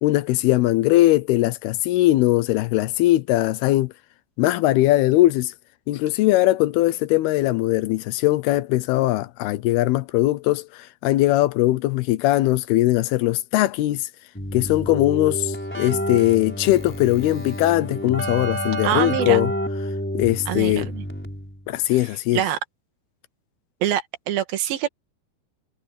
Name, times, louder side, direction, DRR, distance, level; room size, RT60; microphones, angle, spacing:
voice 1, 0.0-3.9 4.4-5.5 5.9-14.1 14.5-19.5 20.1-20.9 21.7-22.4, left 16 dB, 90° left, 2.8 m, -20 dB
Keyboard (musical), 14.4-21.6, equal, 5° left, 4.5 m, -29 dB
voice 2, 18.8-19.4 20.5-21.1 21.9-22.0 22.3-22.6 23.8-24.9, right 11 dB, 75° right, 3.4 m, -25 dB
omnidirectional pair, 4.4 m